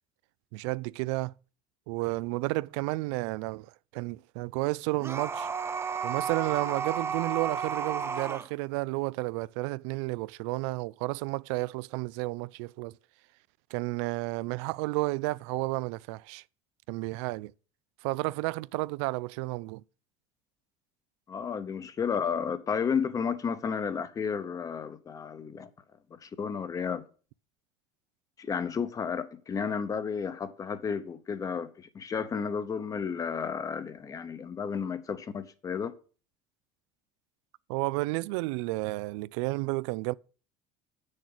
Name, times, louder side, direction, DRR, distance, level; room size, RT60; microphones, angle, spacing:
voice 1, 0.5-1.3 1.9-5.5 6.0-12.9 13.7-16.4 16.9-17.5 18.0-19.8 37.7-40.1, right 22 dB, 85° right, 0.4 m, -32 dB
sound 1, 5.0-8.5, right 6 dB, 15° right, 0.6 m, -32 dB
voice 2, 21.3-25.7 26.1-27.0 28.4-35.9, left 6 dB, 25° left, 0.8 m, -32 dB
8.5 x 6.5 x 6.0 m
cardioid pair, 145°, 14 cm